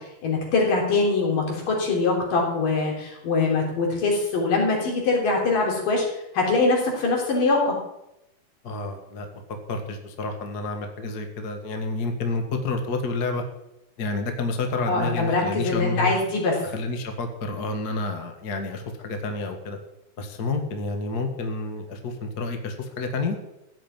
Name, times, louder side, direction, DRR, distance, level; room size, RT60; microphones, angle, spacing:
voice 1, 0.2-6.0 6.3-7.8 14.9-16.5, left 3 dB, 60° left, -1 dB, 5.2 m, -23 dB
voice 2, 8.6-9.3 9.7-13.4 14.0-16.1 16.6-19.8 20.2-23.3, left 3 dB, 45° left, 5 dB, 1.3 m, -29 dB
15.5 x 7.5 x 8.9 m, 0.87 s
omnidirectional pair, 4.4 m